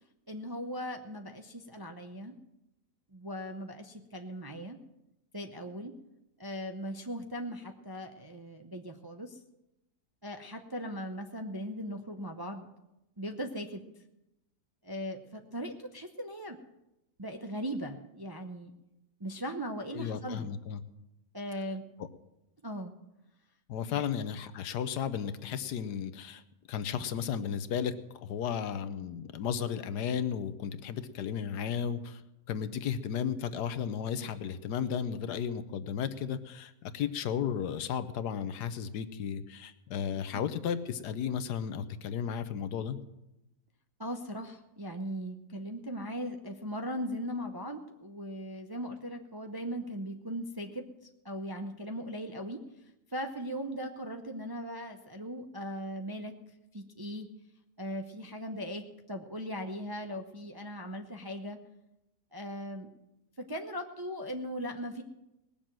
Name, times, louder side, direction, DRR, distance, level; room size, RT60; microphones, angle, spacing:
voice 1, 0.3-2.4 3.1-4.8 5.3-5.9 6.4-9.4 10.2-12.7 13.2-13.8 14.8-16.6 17.2-18.7 19.2-20.6 21.3-21.8 22.6-22.9 23.9-24.0 40.3-40.4 44.0-50.8 51.2-52.6 53.1-56.4 56.7-57.3 57.8-58.8 59.1-61.6 62.3-62.9 63.4-65.0, equal, 25° right, 4 dB, 0.5 m, -39 dB
voice 2, 19.9-20.8 23.7-26.4 26.7-27.9 28.2-32.2 32.5-43.0, left 8 dB, 80° left, 12 dB, 1.4 m, -34 dB
19.0 x 7.0 x 7.5 m, 0.92 s
omnidirectional pair, 1.7 m